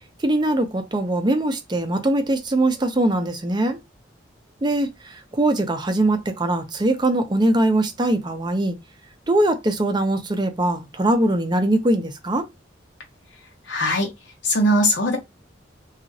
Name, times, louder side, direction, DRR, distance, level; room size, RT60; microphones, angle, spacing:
voice 1, 0.2-3.8 4.6-8.8 9.3-12.5, right 1 dB, 25° right, 0.5 m, -21 dB
voice 2, 13.7-14.1 14.4-15.2, equal, 70° left, 0.8 m, -20 dB
2.9 x 2.4 x 2.6 m
head